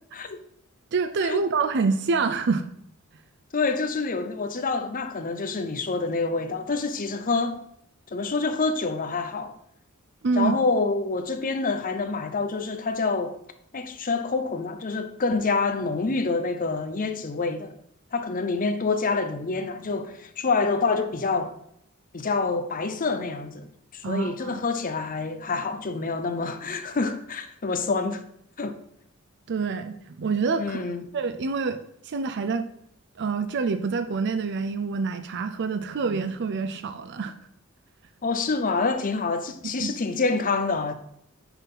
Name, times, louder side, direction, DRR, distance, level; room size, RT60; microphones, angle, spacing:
voice 1, 0.9-2.7 10.2-10.6 24.0-24.6 29.5-30.8 31.1-32.7 33.2-37.3 39.8-39.9, right 4 dB, 55° right, 0.5 m, -26 dB
voice 2, 3.5-7.6 8.1-9.5 10.4-13.3 13.7-17.7 18.1-21.5 22.1-28.2 28.6-28.8 30.6-31.0 38.2-40.9, left 4 dB, 40° left, 0.7 m, -27 dB
5.8 x 5.8 x 5.6 m
head